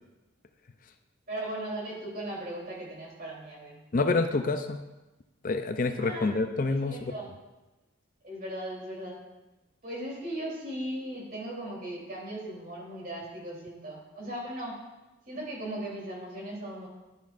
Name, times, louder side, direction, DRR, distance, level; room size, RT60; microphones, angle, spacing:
voice 1, 1.3-3.8 6.0-6.4 6.7-7.3 8.2-9.2 9.8-14.7 15.3-16.9, right 1 dB, 45° right, -4 dB, 3.2 m, -38 dB
voice 2, 3.9-4.8 5.4-7.1, left 3 dB, 40° left, 8 dB, 0.4 m, -27 dB
11.5 x 10.5 x 2.5 m, 1.0 s
head